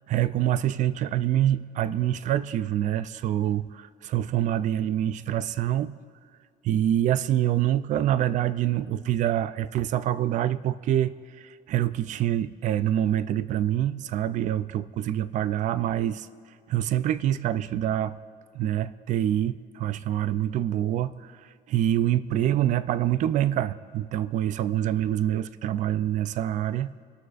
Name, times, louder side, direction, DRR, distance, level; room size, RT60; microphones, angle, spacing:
voice 1, 0.1-6.0 6.6-16.3 16.7-18.2 18.5-21.3 21.7-26.9, right 11 dB, 45° right, 16 dB, 0.4 m, -26 dB
24.5 x 12.5 x 2.5 m, 2.1 s
cardioid pair, 155°, 17 cm